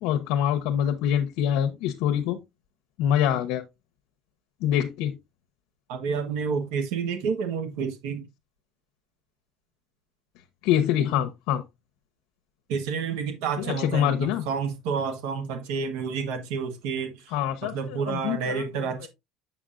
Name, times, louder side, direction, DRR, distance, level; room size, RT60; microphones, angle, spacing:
voice 1, 0.0-2.4 3.0-3.6 4.6-5.2 10.6-11.6 13.8-14.4 17.3-18.6, left 10 dB, 70° left, 0.7 m, -25 dB
voice 2, 5.9-8.3 12.7-19.1, right 6 dB, 85° right, 1.2 m, -30 dB
7.2 x 6.9 x 2.5 m
cardioid pair, 180°, 0 cm